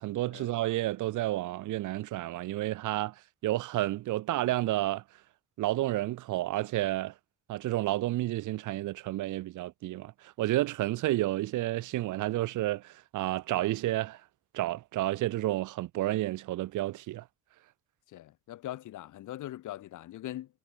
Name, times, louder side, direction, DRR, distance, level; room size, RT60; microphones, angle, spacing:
voice 1, 0.0-3.1 3.4-5.0 5.6-7.1 7.5-14.2 14.5-17.2, right 16 dB, 85° right, 1.4 m, -30 dB
voice 2, 18.1-20.5, left 14 dB, 80° left, 4.1 m, -41 dB
cardioid pair, 90°, 30 cm